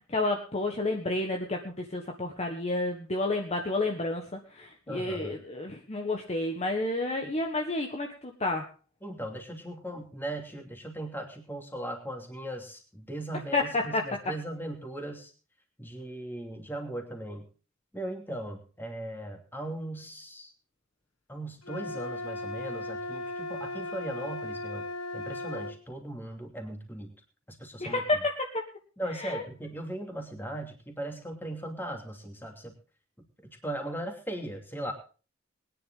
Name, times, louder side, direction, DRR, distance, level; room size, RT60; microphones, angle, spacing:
voice 1, 0.1-8.6 13.5-13.6 13.9-14.0 27.8-28.6 29.2-29.4, left 2 dB, 30° left, 2 dB, 1.5 m, -30 dB
voice 2, 4.9-5.3 9.0-15.3 15.8-17.5 17.9-20.5 21.3-24.8 25.1-27.1 27.5-28.0 29.0-32.8 33.4-34.9, right 1 dB, 10° left, 3 dB, 2.9 m, -38 dB
sound 1, 21.6-25.8, left 2 dB, 75° left, 1.3 m, -37 dB
21.0 x 10.5 x 3.8 m, 0.37 s
head